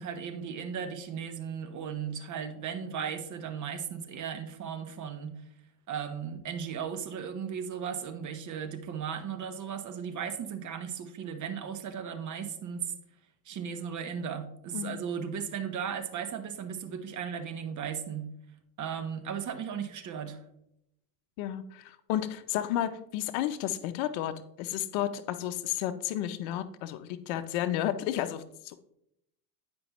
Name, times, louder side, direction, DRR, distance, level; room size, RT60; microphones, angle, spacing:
voice 1, 0.0-5.4 5.9-12.9 13.5-18.3 18.8-20.4, right 7 dB, 40° right, 9 dB, 0.9 m, -36 dB
voice 2, 14.7-15.0 21.4-28.8, left 12 dB, 65° left, 12 dB, 0.7 m, -32 dB
9.4 x 5.2 x 3.0 m, 0.78 s
hypercardioid pair, 90°, 48 cm